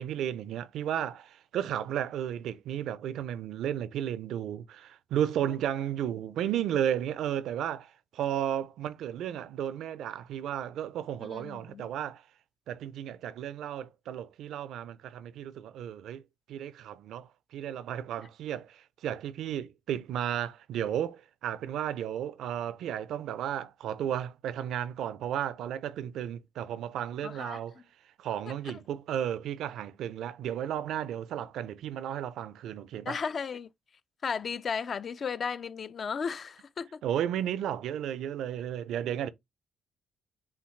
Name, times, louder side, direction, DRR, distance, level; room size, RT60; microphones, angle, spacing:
voice 1, 0.0-12.2 12.7-16.2 16.5-27.8 28.2-33.2 37.0-39.3, right 10 dB, 80° right, 0.4 m, -33 dB
voice 2, 11.2-11.9 27.2-27.6 33.1-33.7 34.2-37.0, left 6 dB, 50° left, 0.3 m, -35 dB
5.7 x 2.3 x 3.1 m
cardioid pair, 90°, 0 cm